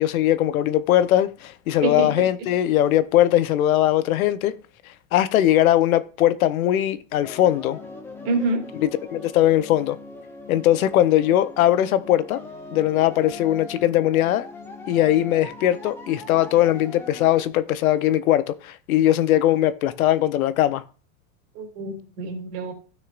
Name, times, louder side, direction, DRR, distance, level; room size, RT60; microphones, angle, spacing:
voice 1, 0.0-4.5 5.1-7.8 9.1-10.0 10.5-12.4 12.7-14.5 14.9-20.8, left 12 dB, 80° left, 0.9 m, -20 dB
voice 2, 1.8-2.3 8.2-8.7 21.5-22.7, right 3 dB, 30° right, 2.5 m, -26 dB
sound 1, 7.2-17.4, left 2 dB, 5° left, 0.5 m, -40 dB
15.5 x 6.5 x 2.5 m
supercardioid pair, 170°, 41 cm